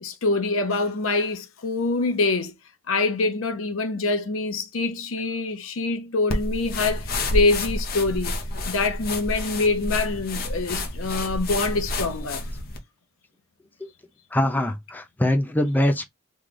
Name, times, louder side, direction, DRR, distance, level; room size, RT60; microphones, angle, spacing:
voice 1, 0.0-2.5 2.9-8.3 8.7-12.4, left 3 dB, 75° left, 0.8 m, -25 dB
sound 1, 6.3-12.8, left 2 dB, 50° left, 0.8 m, -29 dB
voice 2, 14.3-16.1, left 1 dB, 10° left, 0.4 m, -23 dB
3.2 x 2.3 x 3.7 m
head